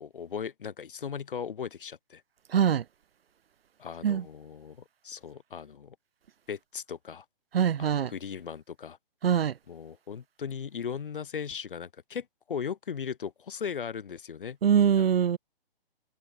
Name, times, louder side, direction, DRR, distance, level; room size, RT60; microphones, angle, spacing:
voice 1, 0.0-2.2 3.8-6.0 6.5-7.3 7.8-9.0 9.7-15.0, left 7 dB, 60° left, 1.8 m, -38 dB
voice 2, 2.5-2.8 4.0-4.2 7.5-8.1 9.2-9.5 14.6-15.4, right 8 dB, 85° right, 0.8 m, -23 dB
hypercardioid pair, 175°, 29 cm